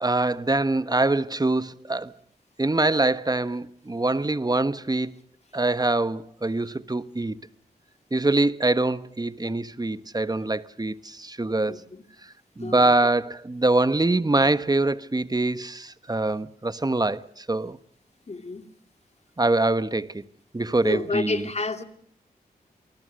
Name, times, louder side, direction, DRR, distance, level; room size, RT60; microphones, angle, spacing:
voice 1, 0.0-2.1 2.6-5.1 5.5-7.3 8.1-11.8 12.6-17.8 19.4-20.2 20.5-21.4, right 2 dB, 25° right, 1.2 m, -24 dB
voice 2, 11.7-12.0 12.6-13.1 18.3-18.7 20.8-21.8, left 3 dB, 40° left, 2.5 m, -30 dB
28.0 x 19.5 x 6.5 m
cardioid pair, 60°, 17 cm